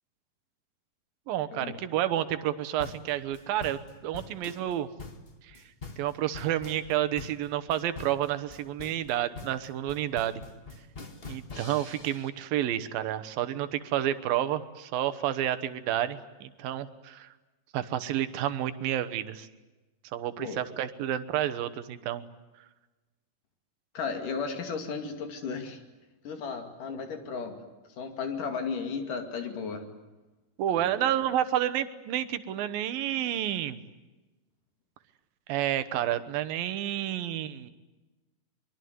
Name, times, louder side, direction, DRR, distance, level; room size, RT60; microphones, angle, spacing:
voice 1, 1.3-4.9 6.0-10.4 11.2-17.3 17.7-19.5 20.1-22.2 30.6-33.8 35.5-37.7, right 12 dB, 75° right, 11 dB, 2.8 m, -30 dB
sound 1, 2.8-12.3, left 3 dB, 45° left, 0.7 m, -44 dB
voice 2, 23.9-25.8 26.2-27.6 28.0-29.8 30.7-31.1, left 5 dB, 60° left, 6 dB, 3.9 m, -35 dB
23.5 x 22.5 x 9.5 m, 1.1 s
omnidirectional pair, 4.3 m